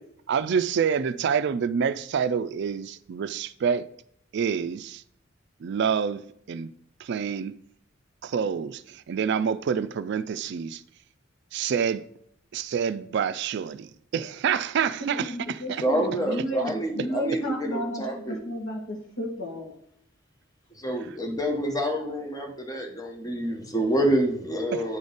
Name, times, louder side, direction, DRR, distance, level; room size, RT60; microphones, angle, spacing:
voice 1, 0.3-3.9 4.3-5.0 5.6-6.2 6.5-6.7 7.0-7.5 8.2-10.8 11.5-12.0 12.5-15.8 24.7-24.8, right 7 dB, 60° right, 0.3 m, -27 dB
voice 2, 15.0-19.7, equal, 80° left, 1.7 m, -33 dB
voice 3, 15.8-18.4 20.8-25.0, right 1 dB, 20° left, 0.9 m, -27 dB
9.4 x 3.7 x 3.9 m
head